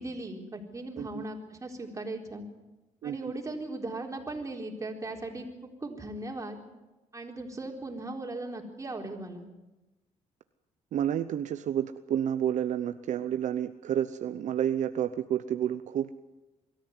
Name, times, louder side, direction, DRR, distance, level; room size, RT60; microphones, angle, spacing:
voice 1, 0.0-2.4 3.0-6.6 7.1-9.5, right 2 dB, 25° right, 1 dB, 4.1 m, -38 dB
voice 2, 3.0-3.3 10.9-16.1, right 10 dB, 70° right, 10 dB, 0.8 m, -30 dB
23.0 x 13.5 x 9.6 m, 1.1 s
cardioid pair, 85°, 13 cm